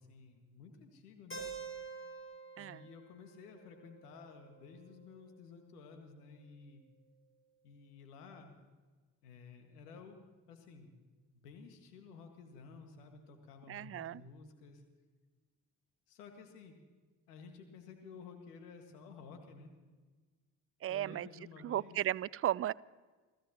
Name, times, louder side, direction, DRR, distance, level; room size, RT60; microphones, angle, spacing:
voice 1, 0.0-1.4 2.6-6.8 7.6-8.5 9.2-10.2 10.5-10.9 11.3-14.8 16.1-16.8 17.3-19.7 20.9-22.0, left 5 dB, 85° left, 5 dB, 2.0 m, -53 dB
Keyboard (musical), 1.3-5.2, right 4 dB, 25° left, 5.7 m, -48 dB
voice 2, 13.7-14.2 20.8-21.3 21.6-22.7, right 12 dB, 30° right, 21 dB, 0.4 m, -35 dB
29.5 x 14.0 x 3.0 m, 1.4 s
hypercardioid pair, 45°, 45 cm